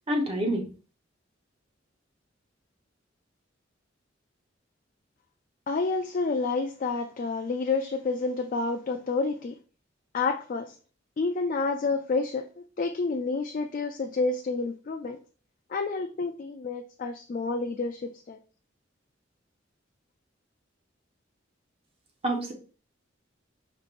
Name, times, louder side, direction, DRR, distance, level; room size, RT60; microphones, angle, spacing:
voice 1, 0.1-0.6 22.2-22.5, right 1 dB, 30° right, 0.9 m, -27 dB
voice 2, 5.7-9.6 10.1-10.7 11.2-12.5 12.8-15.2 15.7-18.4, left 3 dB, 45° left, 0.3 m, -29 dB
5.2 x 3.2 x 2.5 m
head